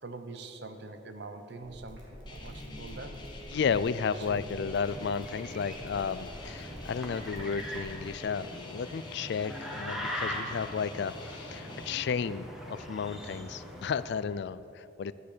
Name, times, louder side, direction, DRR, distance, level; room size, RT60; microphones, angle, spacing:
voice 1, 0.0-3.2 4.2-4.4, right 3 dB, 60° right, 8 dB, 0.9 m, -44 dB
sound 1, 1.5-7.9, equal, 75° right, 3.2 m, -48 dB
sound 2, 2.3-12.0, left 2 dB, 25° left, 1.4 m, -46 dB
voice 2, 3.5-15.1, left 6 dB, 60° left, 16 dB, 0.4 m, -33 dB
sound 3, 4.5-14.3, equal, ahead, 1.4 m, -41 dB
12.0 x 9.9 x 6.7 m, 3.0 s
head